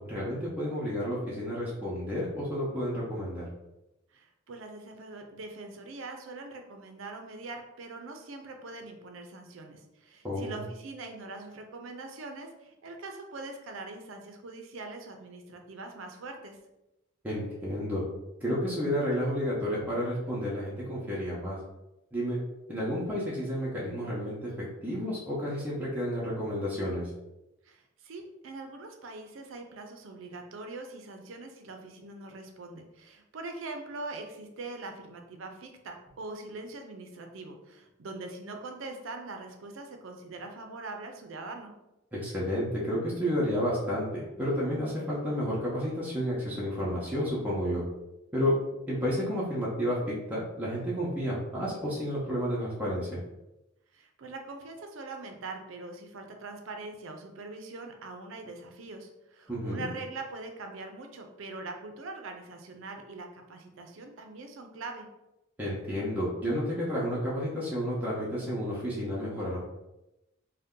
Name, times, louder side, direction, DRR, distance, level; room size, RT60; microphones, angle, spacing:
voice 1, 0.0-3.5 10.2-10.6 17.2-18.0 18.4-21.6 22.1-22.4 22.7-24.5 24.8-27.1 42.1-47.8 48.3-48.5 48.9-53.2 59.5-59.9 65.6-69.6, equal, 10° right, -8 dB, 0.6 m, -31 dB
voice 2, 4.1-16.6 27.6-41.7 53.9-65.1, right 3 dB, 65° right, 4 dB, 0.5 m, -42 dB
2.7 x 2.1 x 3.6 m, 0.93 s
head